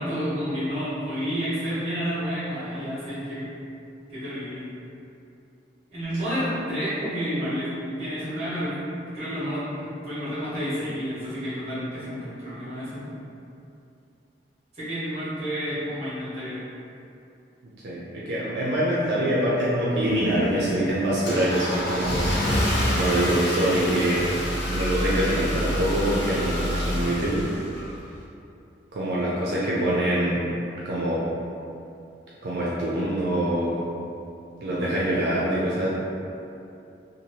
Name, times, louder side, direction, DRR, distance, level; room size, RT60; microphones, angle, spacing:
voice 1, 0.0-3.5 4.1-4.6 5.9-7.7 8.0-8.7 9.1-13.0 14.7-16.6, equal, 35° right, -12 dB, 1.3 m, -30 dB
voice 2, 18.3-22.3 22.9-24.3 24.6-27.4 28.9-30.4 30.9-31.2 32.4-33.9 34.6-35.9, right 1 dB, 75° right, -7 dB, 0.4 m, -24 dB
Car / Engine starting, 20.0-28.2, equal, 85° left, 0.8 m, -27 dB
3.0 x 2.3 x 2.7 m, 2.7 s
head